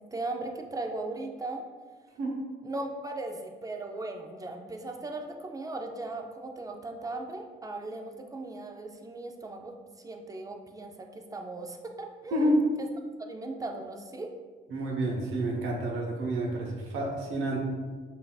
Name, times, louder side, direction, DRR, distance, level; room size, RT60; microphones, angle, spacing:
voice 1, 0.1-1.6 2.6-12.5 12.8-12.9 13.3-14.3, right 2 dB, 20° right, 3 dB, 0.5 m, -38 dB
voice 2, 12.3-12.6 14.7-17.6, right 1 dB, 80° right, -1 dB, 1.0 m, -29 dB
5.5 x 2.7 x 2.3 m, 1.4 s
cardioid pair, 90°, 20 cm